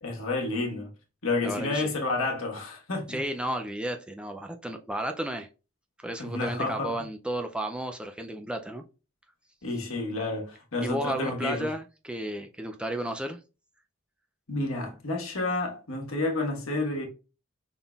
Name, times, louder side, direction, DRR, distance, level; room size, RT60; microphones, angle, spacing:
voice 1, 0.0-0.9 1.2-3.2 6.2-6.9 9.6-11.7 14.5-17.1, left 2 dB, 75° left, 1.4 m, -30 dB
voice 2, 1.4-1.9 3.1-5.5 6.0-8.8 10.8-13.4, right 1 dB, 5° right, 0.3 m, -33 dB
5.4 x 3.8 x 2.3 m
head